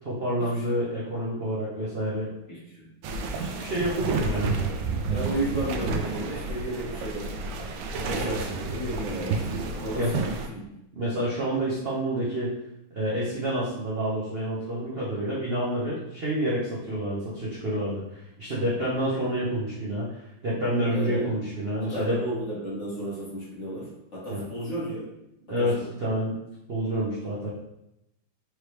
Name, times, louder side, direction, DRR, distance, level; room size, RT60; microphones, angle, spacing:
voice 1, 0.0-2.3 3.3-4.6 9.9-10.2 10.9-12.5 12.9-22.2 24.3-24.4 25.5-26.4 26.7-27.5, right 1 dB, 60° right, -7 dB, 0.6 m, -28 dB
voice 2, 2.5-2.9 5.1-7.3 8.0-9.4 9.7-10.7 20.9-21.3 21.8-25.1 25.6-25.9, right 1 dB, 35° left, -8 dB, 1.6 m, -33 dB
sound 1, 3.0-10.5, right 3 dB, 75° right, 1.2 m, -30 dB
4.5 x 3.2 x 3.2 m, 0.85 s
omnidirectional pair, 2.4 m